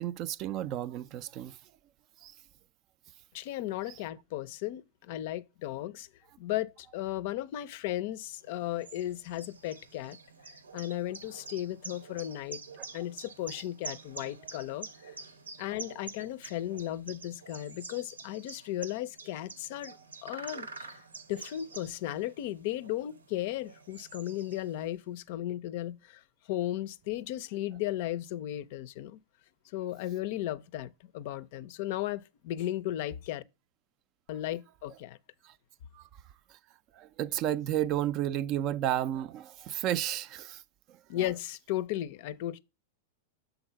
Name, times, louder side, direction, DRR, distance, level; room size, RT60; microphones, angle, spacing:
voice 1, 0.0-1.6 2.2-2.3 3.9-4.0 12.8-12.9 35.4-35.5 35.9-36.1 36.5-36.6 36.9-40.6 40.9-41.3, right 12 dB, 40° right, 0.4 m, -32 dB
voice 2, 3.3-6.1 6.4-10.2 10.7-12.6 12.9-15.1 15.6-20.9 21.3-26.2 26.5-29.2 29.7-33.4 34.3-35.2 41.1-42.6, left 13 dB, 55° left, 0.5 m, -35 dB
sound 1, 8.4-25.0, right 4 dB, 80° right, 0.8 m, -47 dB
6.9 x 3.8 x 5.7 m
figure-of-eight pair, 95°, 0 cm